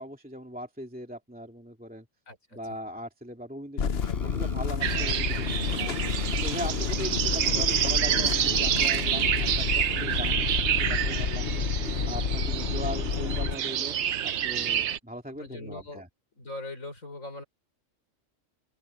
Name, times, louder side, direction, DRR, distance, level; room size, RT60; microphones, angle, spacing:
voice 1, 0.0-2.1 2.5-5.7 6.4-11.5 12.1-16.1, equal, 5° right, 2.4 m, -39 dB
voice 2, 2.3-2.6 5.3-5.4 7.5-7.6 15.4-16.0 16.4-17.4, left 2 dB, 85° left, 6.3 m, -41 dB
sound 1, 3.8-13.5, left 6 dB, 55° left, 1.1 m, -30 dB
Screech, 4.0-4.8 5.9-10.0, equal, 15° left, 5.9 m, -53 dB
sound 2, 4.8-15.0, right 10 dB, 65° right, 1.0 m, -28 dB
open air
omnidirectional pair, 1.4 m